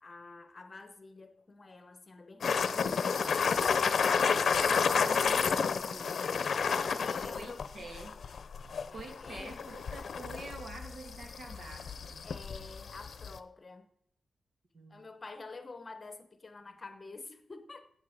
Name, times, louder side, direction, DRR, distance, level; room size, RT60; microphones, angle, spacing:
voice 1, 0.0-4.5 6.6-8.0 8.9-9.9 12.2-13.9 14.9-17.9, left 3 dB, 35° left, 1.0 m, -49 dB
sound 1, 2.4-13.4, left 6 dB, 70° left, 0.7 m, -31 dB
voice 2, 4.9-6.4 6.7-8.1 8.9-12.3 14.7-15.0, right 2 dB, 65° right, 2.5 m, -47 dB
16.0 x 8.1 x 4.9 m
wide cardioid pair, 120°, 0 cm